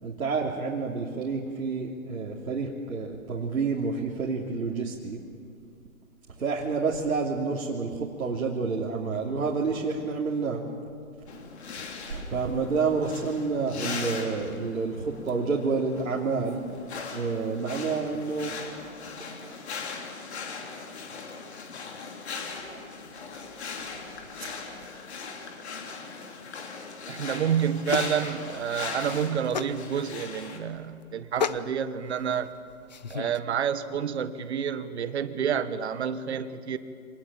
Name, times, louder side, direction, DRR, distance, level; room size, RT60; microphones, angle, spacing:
voice 1, 0.0-5.2 6.4-10.6 11.8-16.6 17.1-18.5 22.6-22.8 23.9-24.0, right 4 dB, 80° right, -3 dB, 3.1 m, -29 dB
sound 1, 11.3-30.6, left 5 dB, 50° left, 3.3 m, -39 dB
voice 2, 27.1-32.5 33.1-36.8, right 8 dB, 50° right, 11 dB, 1.4 m, -29 dB
sound 2, 27.4-33.4, left 6 dB, 30° left, 0.5 m, -36 dB
25.5 x 19.5 x 8.8 m, 2.3 s
hypercardioid pair, 155°, 42 cm